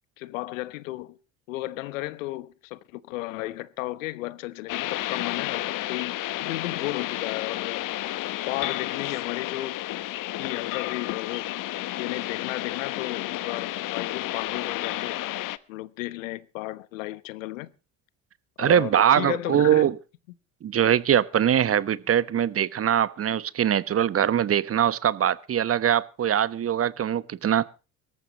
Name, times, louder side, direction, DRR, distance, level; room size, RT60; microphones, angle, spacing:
voice 1, 0.2-1.2 1.5-6.1 6.4-7.9 8.5-9.8 10.3-15.2 15.7-17.7 18.6-19.9, left 18 dB, 75° left, 1.1 m, -34 dB
sound 1, 4.7-15.6, left 16 dB, 50° left, 1.1 m, -31 dB
voice 2, 18.6-19.9 20.6-27.6, right 9 dB, 35° right, 1.1 m, -22 dB
24.0 x 14.0 x 3.0 m
hypercardioid pair, 65°, 40 cm